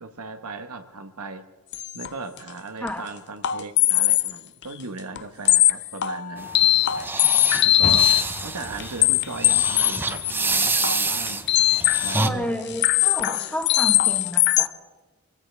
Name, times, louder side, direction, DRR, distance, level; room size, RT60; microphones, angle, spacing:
voice 1, 0.0-1.4 1.9-6.5 7.2-7.4 7.6-8.1 8.4-11.4 12.0-12.5, right 3 dB, 85° right, 8 dB, 1.4 m, -37 dB
sound 1, 1.7-2.1 2.4-2.5 2.9-3.0 3.4-4.4 4.6-4.7 5.2-5.3 5.5-12.3 12.7-14.7, left 14 dB, 50° left, 0.5 m, -20 dB
sound 2, 6.4-12.3, right 3 dB, 10° right, 0.6 m, -27 dB
Car, 7.8-11.1 11.5-12.8 13.3-13.4 14.0-14.1, left 2 dB, 30° left, 0.9 m, -38 dB
voice 2, 12.1-14.7, left 1 dB, 5° left, 2 dB, 1.4 m, -31 dB
25.0 x 16.0 x 3.4 m, 1.3 s
head